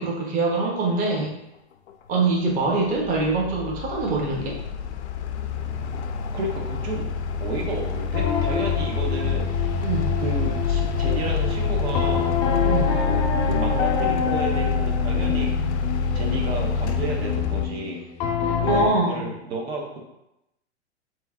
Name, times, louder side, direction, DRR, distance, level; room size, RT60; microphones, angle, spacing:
voice 1, 0.0-1.3 2.1-4.6 9.8-10.1 12.6-13.0 18.4-19.3, right 3 dB, 25° right, -1 dB, 0.8 m, -24 dB
Old Metal Table Fan Switch On & Off, 1.9-2.0 2.5-17.7, left 5 dB, 85° left, 0.5 m, -27 dB
voice 2, 6.3-7.1 7.4-9.8 10.2-12.3 13.0-13.2 13.4-15.5 16.1-18.0 18.6-20.0, right 2 dB, 70° right, -1 dB, 1.2 m, -32 dB
sound 1, 8.1-18.9, left 7 dB, 40° left, 0.6 m, -27 dB
3.3 x 3.1 x 3.5 m, 0.88 s
hypercardioid pair, 125°, 33 cm